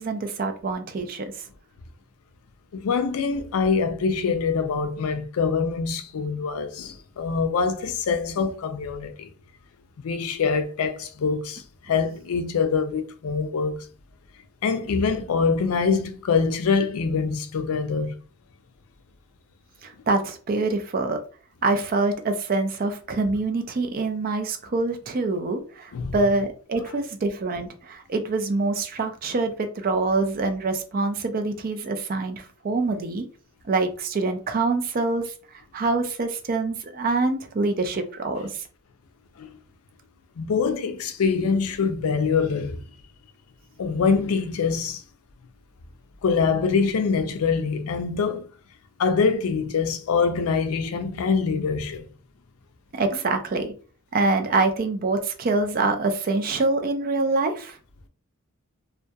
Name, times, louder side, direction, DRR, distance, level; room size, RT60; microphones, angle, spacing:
voice 1, 0.0-1.4 19.8-21.2 21.6-33.2 33.6-38.7 52.9-53.7 54.1-57.8, right 3 dB, 40° right, 0.4 m, -25 dB
voice 2, 2.7-9.3 10.0-13.9 14.6-18.1 25.9-26.2 39.4-39.5 40.4-42.8 43.8-45.0 46.2-48.5 49.0-52.0, left 5 dB, 75° left, 0.4 m, -24 dB
2.7 x 2.2 x 2.2 m
head